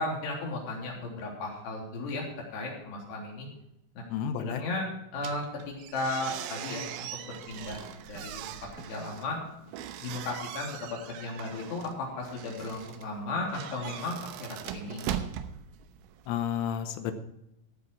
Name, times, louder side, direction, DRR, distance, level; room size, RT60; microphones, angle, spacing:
voice 1, 0.0-2.2 2.5-3.5 3.9-4.0 4.4-4.8 5.1-6.8 7.2-8.4 8.8-9.4 10.0-15.1, left 2 dB, 55° left, -2 dB, 5.1 m, -35 dB
voice 2, 4.1-4.6 16.3-17.1, left 9 dB, 75° left, 8 dB, 3.3 m, -31 dB
sound 1, 5.2-16.3, right 10 dB, 85° right, 3.4 m, -41 dB
15.5 x 8.3 x 4.7 m, 0.86 s
omnidirectional pair, 5.9 m